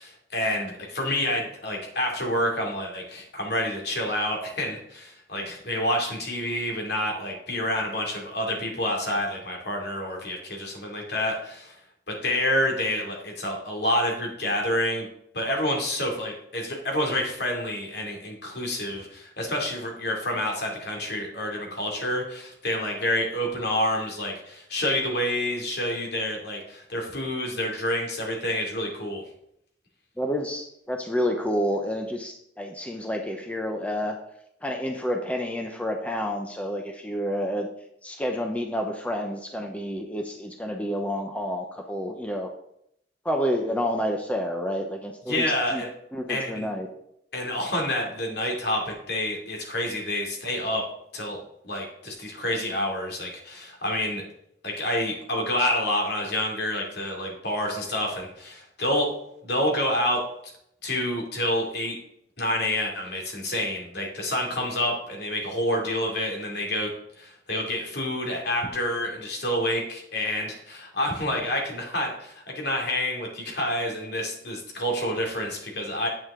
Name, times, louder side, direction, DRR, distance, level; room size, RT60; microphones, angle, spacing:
voice 1, 0.0-11.8 12.1-15.1 15.3-29.2 45.3-45.9 46.3-46.7 47.3-50.8 51.1-51.4 51.6-54.2 54.6-59.1 59.4-60.3 60.8-62.0 62.4-66.9 67.2-76.1, left 1 dB, 65° left, 0 dB, 2.8 m, -28 dB
voice 2, 30.2-34.1 34.6-37.7 38.0-42.5 43.2-45.5 45.7-45.8 46.1-46.9, equal, 10° left, 3 dB, 0.8 m, -29 dB
9.3 x 8.7 x 3.8 m, 0.74 s
head